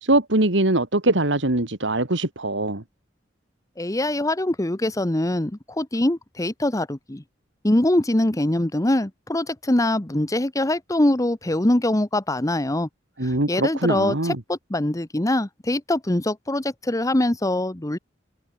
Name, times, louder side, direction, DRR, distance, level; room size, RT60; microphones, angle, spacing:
voice 1, 0.0-2.8 13.2-14.4, right 2 dB, 75° right, 2.6 m, -22 dB
voice 2, 3.8-7.2 7.6-12.9 13.2-18.0, left 1 dB, 20° left, 1.0 m, -23 dB
head